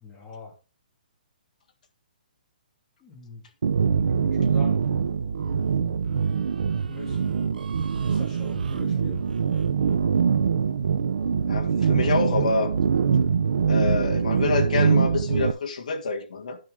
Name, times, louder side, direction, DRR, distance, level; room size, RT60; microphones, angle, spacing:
voice 1, 0.0-0.5 3.0-3.4 4.0-4.8 6.9-7.2 8.0-9.3, left 2 dB, 10° left, 2.2 m, -42 dB
sound 1, 3.6-15.5, right 6 dB, 75° right, 0.7 m, -23 dB
voice 2, 11.5-12.7 13.7-16.6, left 4 dB, 55° left, 1.6 m, -26 dB
9.8 x 6.5 x 3.6 m
hypercardioid pair, 175°, 5 cm